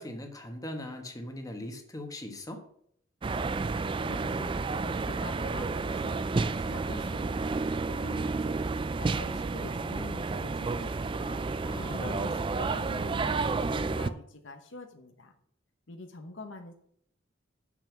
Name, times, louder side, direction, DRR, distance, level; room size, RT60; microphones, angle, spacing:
voice 1, 0.0-2.7 11.7-12.3, left 1 dB, 20° left, 4 dB, 1.3 m, -40 dB
sound 1, 3.2-14.1, right 3 dB, 25° right, 0.3 m, -31 dB
voice 2, 3.8-11.4 11.9-13.4 13.6-15.3 15.9-16.7, left 2 dB, 75° left, 5 dB, 1.1 m, -45 dB
6.9 x 6.0 x 7.3 m, 0.66 s
head